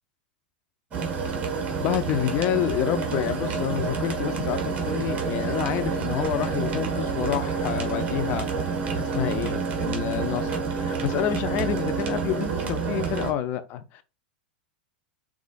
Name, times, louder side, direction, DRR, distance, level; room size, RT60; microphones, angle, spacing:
sound 1, 0.9-13.3, right 5 dB, 30° right, 1.5 m, -28 dB
voice 1, 1.8-8.5 8.9-14.0, left 10 dB, 40° left, 0.6 m, -28 dB
4.9 x 3.6 x 2.4 m
figure-of-eight pair, 95°, 5 cm